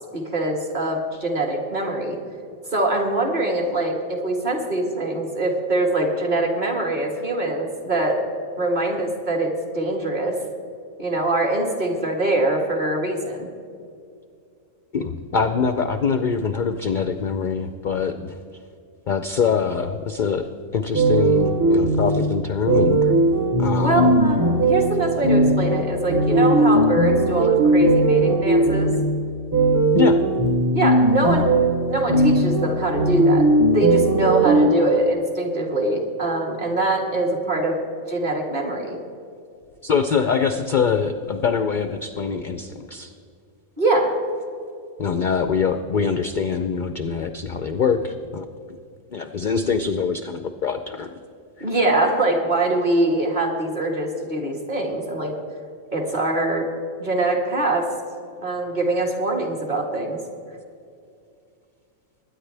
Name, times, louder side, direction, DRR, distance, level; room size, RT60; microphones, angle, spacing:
voice 1, 0.1-2.2 2.7-8.2 8.6-10.4 11.0-13.5 23.8-28.9 30.7-31.5 31.9-33.5 33.7-37.8 38.1-39.0 43.8-44.1 51.6-55.3 55.9-56.7 57.0-57.9 58.4-60.2, right 2 dB, 35° right, 0 dB, 1.9 m, -23 dB
voice 2, 14.9-18.4 19.1-20.5 20.7-23.1 23.6-24.2 29.9-30.2 39.8-43.1 45.0-48.4 49.1-51.1 51.6-51.7, left 6 dB, 55° left, 8 dB, 0.5 m, -24 dB
sound 1, 20.9-34.7, right 2 dB, 20° right, 0.7 m, -19 dB
21.5 x 9.7 x 3.3 m, 2.4 s
omnidirectional pair, 1.4 m